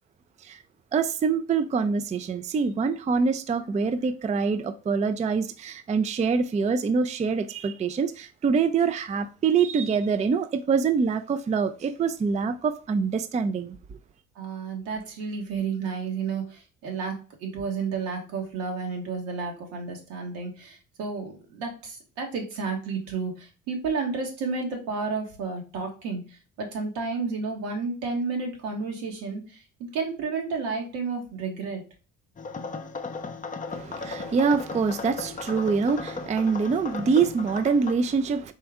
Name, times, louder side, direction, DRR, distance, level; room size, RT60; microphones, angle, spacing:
voice 1, 0.9-14.0 33.7-38.5, right 5 dB, 20° right, 0.4 m, -25 dB
voice 2, 14.3-29.6 29.9-31.8, right 4 dB, 80° right, 1.6 m, -31 dB
sound 1, 32.4-37.9, left 4 dB, 20° left, 0.7 m, -36 dB
4.3 x 3.4 x 3.5 m
hypercardioid pair, 60°, 37 cm